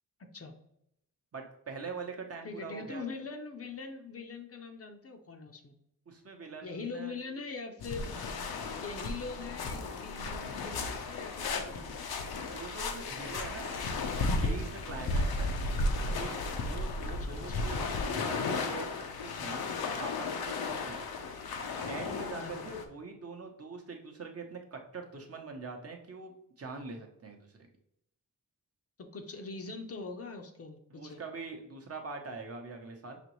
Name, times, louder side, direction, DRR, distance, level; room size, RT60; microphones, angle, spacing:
voice 1, 1.3-3.1 6.1-7.2 12.4-13.8 14.2-15.5 16.2-16.4 16.6-19.7 20.0-21.0 21.9-27.7 30.9-33.2, right 4 dB, 40° right, 3 dB, 0.7 m, -43 dB
voice 2, 2.4-5.7 6.6-8.1 8.8-12.0 17.2-17.7 22.3-22.7 29.0-31.2, left 4 dB, 40° left, 5 dB, 0.5 m, -42 dB
sound 1, 7.8-22.8, left 3 dB, 90° left, 0.7 m, -34 dB
5.9 x 3.0 x 3.0 m, 0.78 s
wide cardioid pair, 150°, 36 cm